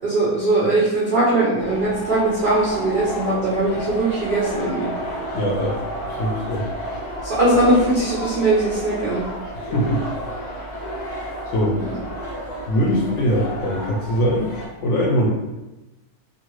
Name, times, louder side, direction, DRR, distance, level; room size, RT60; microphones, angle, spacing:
voice 1, 0.0-4.9 7.2-9.2 11.8-11.9, right 2 dB, 55° right, -7 dB, 0.6 m, -20 dB
sound 1, 1.6-14.7, equal, 80° left, 0.3 m, -31 dB
voice 2, 5.3-5.8 6.0-6.7 9.5-10.0 11.5-11.8 12.7-14.5 14.8-15.3, equal, 65° left, -2 dB, 0.8 m, -21 dB
2.6 x 2.5 x 3.0 m, 1.0 s
omnidirectional pair, 1.6 m